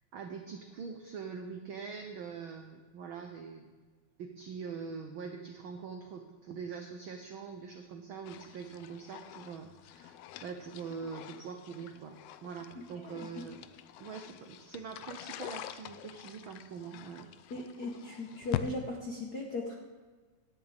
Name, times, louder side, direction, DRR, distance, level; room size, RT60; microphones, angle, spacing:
voice 1, 0.1-3.7 4.2-12.2 12.4-13.6 14.0-17.3, right 6 dB, 85° right, 4 dB, 1.1 m, -43 dB
sound 1, 8.2-18.7, left 12 dB, 85° left, 1.4 m, -44 dB
voice 2, 17.5-19.7, left 2 dB, 55° left, 0 dB, 1.1 m, -38 dB
17.5 x 10.5 x 3.5 m, 1.4 s
omnidirectional pair, 3.3 m